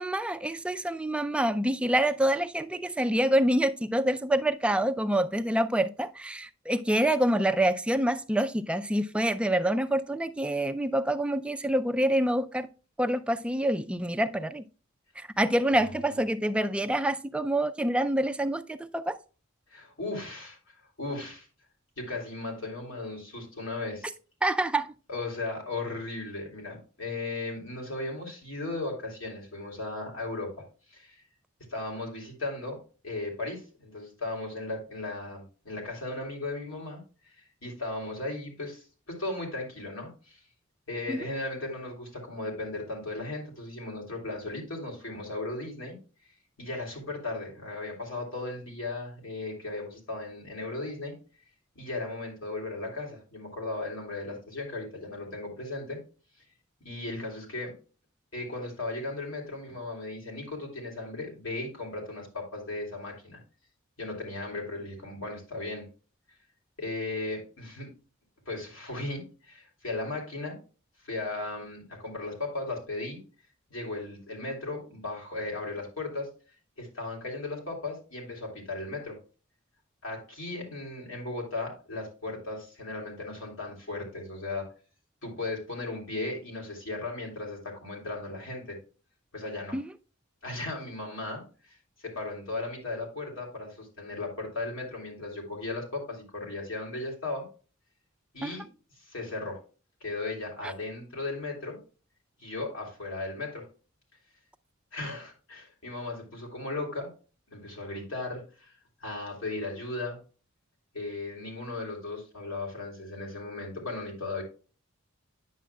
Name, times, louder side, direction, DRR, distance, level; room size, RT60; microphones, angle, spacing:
voice 1, 0.0-12.7 13.0-14.6 15.2-19.2 24.4-24.9 41.1-41.3 89.7-89.9 98.4-98.6 100.6-100.7, right 1 dB, 5° right, 0.3 m, -27 dB
voice 2, 19.7-20.6 21.0-21.5 22.0-24.1 25.1-31.2 31.7-32.8 33.0-37.3 37.6-40.4 40.9-46.0 46.6-51.1 51.7-56.0 56.8-57.7 58.3-63.4 64.0-65.9 66.8-67.9 68.4-70.6 71.0-73.2 73.7-76.3 76.8-79.2 80.0-84.7 85.2-88.8 89.3-89.8 90.4-97.5 98.3-98.6 99.0-99.6 100.0-101.8 102.4-103.6 104.9-107.1 107.5-108.7 109.0-110.2 110.9-114.4, left 2 dB, 70° left, 3.1 m, -36 dB
9.3 x 7.2 x 2.2 m
head